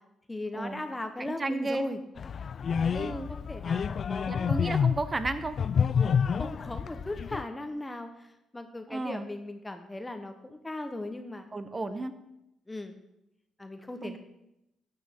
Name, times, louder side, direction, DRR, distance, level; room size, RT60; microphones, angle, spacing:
voice 1, 0.3-2.0 2.8-4.9 6.4-11.5 11.8-12.0 12.7-13.0 13.6-14.2, left 1 dB, 15° left, 7 dB, 0.8 m, -38 dB
voice 2, 1.2-1.8 2.9-3.3 4.3-5.5 8.9-9.3 11.5-12.2 14.0-14.2, right 2 dB, 25° right, 11 dB, 0.9 m, -33 dB
sound 1, 2.2-7.4, left 7 dB, 50° left, 0.3 m, -28 dB
11.5 x 8.8 x 3.6 m, 0.86 s
cardioid pair, 90°, 0 cm